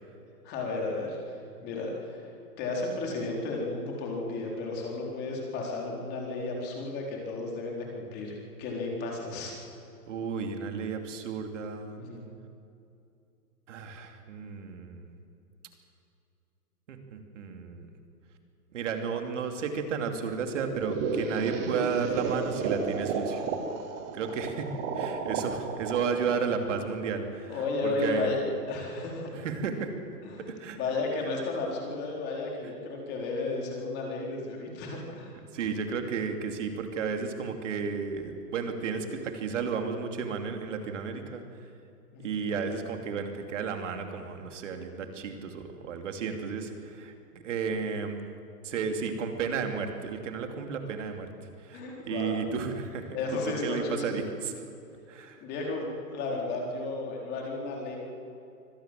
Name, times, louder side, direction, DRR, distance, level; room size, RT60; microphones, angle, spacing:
voice 1, 0.4-1.2 1.6-2.3 2.6-9.6 12.0-12.2 27.5-28.4 28.7-29.3 30.2-35.4 42.1-42.4 51.7-52.5 53.1-54.2 55.4-58.0, left 3 dB, 20° left, -1 dB, 4.2 m, -33 dB
voice 2, 10.1-12.0 13.7-15.1 16.9-17.9 18.7-23.4 24.1-24.7 25.0-28.4 29.3-29.9 30.5-30.8 35.5-41.4 42.2-48.2 48.6-51.3 51.6-53.2 53.6-54.5 55.1-55.4, right 5 dB, 50° right, 5 dB, 2.9 m, -33 dB
sound 1, 20.6-27.4, right 5 dB, 10° right, 0.7 m, -33 dB
25.5 x 17.5 x 7.7 m, 2.7 s
hypercardioid pair, 160°, 49 cm